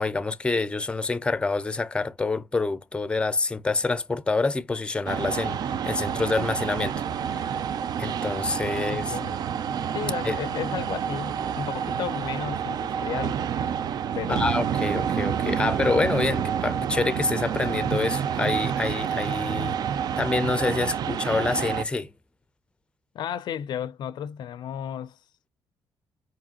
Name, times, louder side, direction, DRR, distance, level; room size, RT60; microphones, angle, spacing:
voice 1, 0.0-7.0 7.2-7.5 8.0-9.2 10.2-10.4 14.3-19.8 20.2-22.1, left 3 dB, 15° left, 0.5 m, -27 dB
sound 1, 5.1-21.8, right 8 dB, 60° right, 0.4 m, -28 dB
voice 2, 8.7-9.4 9.9-13.4 14.1-14.6 23.1-25.2, left 9 dB, 65° left, 0.4 m, -34 dB
4.9 x 2.9 x 2.7 m
cardioid pair, 110°, 8 cm